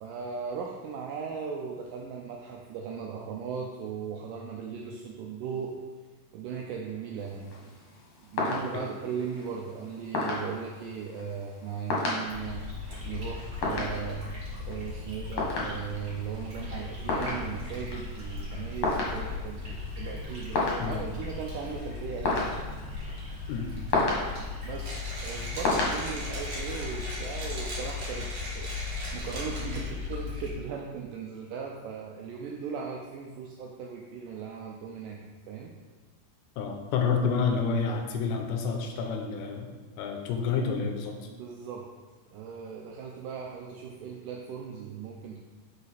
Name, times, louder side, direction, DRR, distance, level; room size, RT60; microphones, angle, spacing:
voice 1, 0.0-5.8 6.3-7.5 8.2-12.7 13.0-14.3 14.6-22.6 24.6-28.7 29.1-35.2 35.5-35.7 41.3-41.9 42.3-45.4, right 6 dB, 85° right, 0 dB, 1.9 m, -38 dB
sound 1, 7.2-26.0, left 3 dB, 55° left, 1.9 m, -34 dB
sound 2, 12.3-30.5, left 4 dB, 30° right, 1.7 m, -38 dB
Mechanisms, 24.8-30.1, right 1 dB, 60° right, 1.1 m, -39 dB
voice 2, 36.6-39.7 40.0-41.3, left 5 dB, 85° left, 4 dB, 2.7 m, -29 dB
6.6 x 5.2 x 4.1 m, 1.4 s
omnidirectional pair, 4.4 m